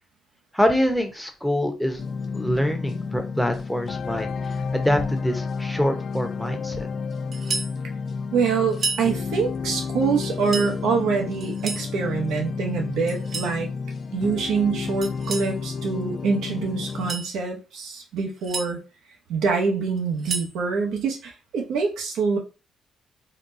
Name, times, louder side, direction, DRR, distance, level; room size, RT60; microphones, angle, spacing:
voice 1, 0.5-2.0 2.3-6.9, equal, ahead, 4 dB, 0.7 m, -25 dB
sound 1, 2.0-17.1, left 5 dB, 50° left, 0.3 m, -31 dB
sound 2, 7.3-7.7 8.7-9.1 10.2-10.7 11.4-11.9 13.1-13.5 15.0-15.5 16.8-17.3 18.2-18.7 20.0-20.5, right 3 dB, 45° right, 0.6 m, -31 dB
voice 2, 8.3-13.7 14.1-18.8 19.3-22.4, right 5 dB, 80° right, 2 dB, 0.9 m, -25 dB
4.0 x 2.1 x 2.6 m, 0.31 s
cardioid pair, 90°, 0 cm